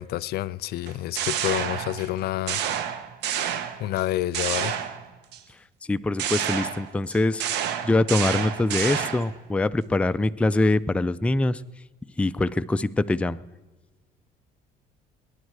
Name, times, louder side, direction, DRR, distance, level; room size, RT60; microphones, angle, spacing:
voice 1, 0.0-2.6 3.8-4.7, left 14 dB, 70° left, 0.4 m, -28 dB
sound 1, 0.9-2.1 2.5-4.0 4.3-5.4 6.2-9.4, right 9 dB, 85° right, 1.1 m, -29 dB
voice 2, 5.9-7.4 7.8-11.6 12.2-13.4, left 2 dB, 5° left, 0.4 m, -23 dB
23.5 x 10.5 x 4.7 m
cardioid pair, 110°, 17 cm